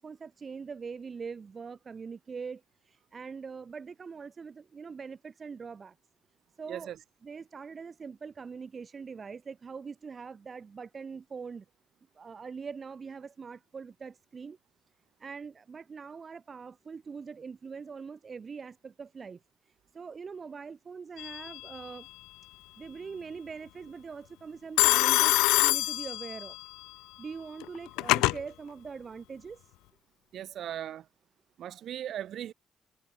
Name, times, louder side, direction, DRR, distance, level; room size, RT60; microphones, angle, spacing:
voice 1, 0.0-5.9 6.6-6.9 7.2-11.6 12.2-14.6 15.2-19.4 19.9-22.1 22.8-26.6 27.2-29.7, right 5 dB, 45° right, 7.2 m, -43 dB
Telephone, 21.2-21.7 24.8-26.6 27.6-28.4, left 21 dB, 85° left, 0.3 m, -25 dB
voice 2, 30.3-31.0 31.6-32.5, right 11 dB, 70° right, 6.0 m, -38 dB
supercardioid pair, 55°, 0 cm